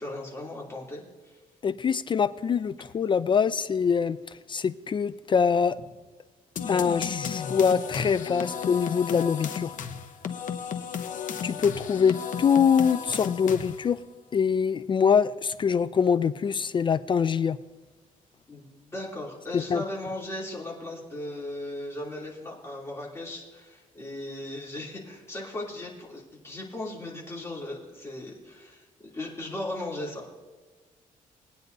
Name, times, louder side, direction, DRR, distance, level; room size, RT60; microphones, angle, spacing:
voice 1, 0.0-1.4 11.5-11.6 18.5-30.4, left 1 dB, 20° left, -3 dB, 2.8 m, -37 dB
voice 2, 1.6-4.2 4.5-5.8 6.7-9.7 11.4-14.0 14.3-17.6 19.5-19.8, left 6 dB, 35° left, 15 dB, 0.3 m, -24 dB
sound 1, 6.6-13.9, left 7 dB, 65° left, 0.9 m, -34 dB
20.5 x 9.4 x 2.6 m, 1.3 s
cardioid pair, 115°, 14 cm